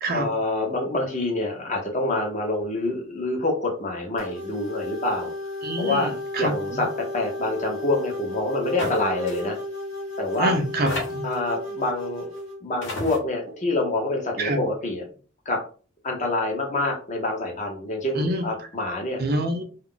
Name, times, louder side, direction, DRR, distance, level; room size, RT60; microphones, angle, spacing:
voice 1, 0.1-5.3 5.8-6.1 6.4-9.6 10.2-10.5 11.2-12.3 12.6-15.0 15.5-15.6 16.0-19.2, left 2 dB, 35° left, 1 dB, 0.7 m, -26 dB
sound 1, 4.2-12.6, left 2 dB, 80° left, 1.1 m, -34 dB
voice 2, 5.6-6.8 10.4-11.3 14.4-14.6 18.1-18.5 19.2-19.6, right 1 dB, 45° right, 4 dB, 0.5 m, -26 dB
sound 2, 8.8-9.0 9.3-9.4 10.3-10.4 10.9-11.4 12.4-12.5 12.8-13.2, left 1 dB, 60° left, 1.0 m, -31 dB
2.3 x 2.0 x 3.7 m, 0.39 s
head